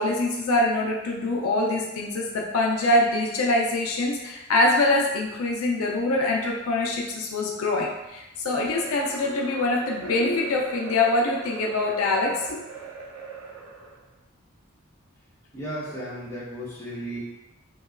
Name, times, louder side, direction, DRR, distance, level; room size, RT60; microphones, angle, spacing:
voice 1, 0.0-12.6, left 2 dB, 75° left, -1 dB, 0.4 m, -24 dB
sound 1, 8.6-14.0, right 5 dB, 85° right, 0.5 m, -39 dB
voice 2, 15.5-17.2, equal, 15° left, -9 dB, 0.8 m, -34 dB
2.9 x 2.6 x 2.4 m, 0.96 s
head